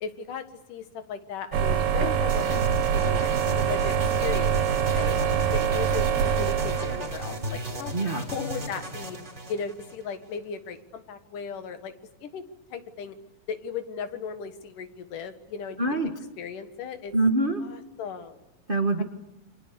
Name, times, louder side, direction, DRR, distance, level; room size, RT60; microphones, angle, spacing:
voice 1, 0.0-2.6 2.9-3.9 4.2-4.7 4.9-5.2 5.5-7.9 8.3-9.2 9.5-11.9 12.2-12.4 12.7-13.1 13.5-15.8 16.4-17.1 17.6-18.4 19.0-19.1, left 6 dB, 70° left, 9 dB, 3.1 m, -36 dB
sound 1, 1.5-7.5, right 8 dB, 80° right, 3.3 m, -25 dB
sound 2, 2.3-10.4, right 1 dB, 20° right, 3.4 m, -36 dB
voice 2, 7.9-8.2 15.8-16.1 17.1-17.6 18.7-19.0, right 2 dB, 50° right, 5 dB, 0.6 m, -24 dB
29.0 x 25.5 x 6.9 m, 0.96 s
omnidirectional pair, 3.9 m